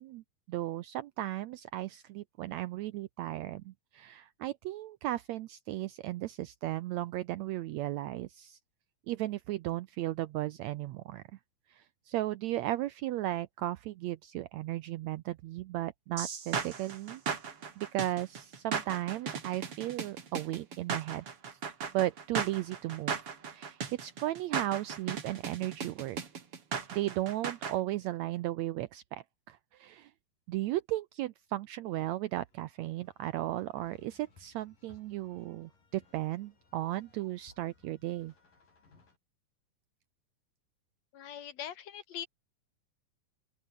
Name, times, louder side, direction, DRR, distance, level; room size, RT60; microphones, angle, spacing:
voice 1, 0.0-8.6 9.1-11.2 11.7-17.2 17.8-21.2 21.9-23.1 23.5-26.2 26.9-30.1 30.5-38.3, right 15 dB, 80° right, 1.6 m, -35 dB
sound 1, 16.2-27.7, right 6 dB, 45° right, 3.3 m, -36 dB
sound 2, 32.2-39.2, left 4 dB, 85° left, 9.0 m, -64 dB
voice 2, 41.1-42.3, left 9 dB, 60° left, 2.2 m, -42 dB
open air
omnidirectional pair, 3.8 m